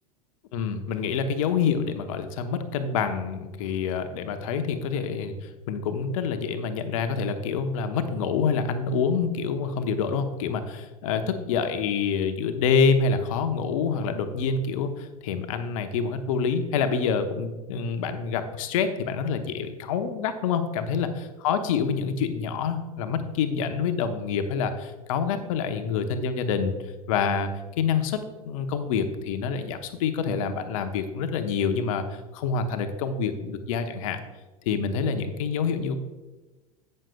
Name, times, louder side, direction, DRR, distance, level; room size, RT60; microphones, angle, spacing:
voice 1, 0.5-21.1 21.4-28.2 28.4-34.2 34.6-36.0, left 6 dB, 60° left, 8 dB, 1.0 m, -27 dB
16.5 x 6.6 x 2.3 m, 1.2 s
figure-of-eight pair, 80°, 20 cm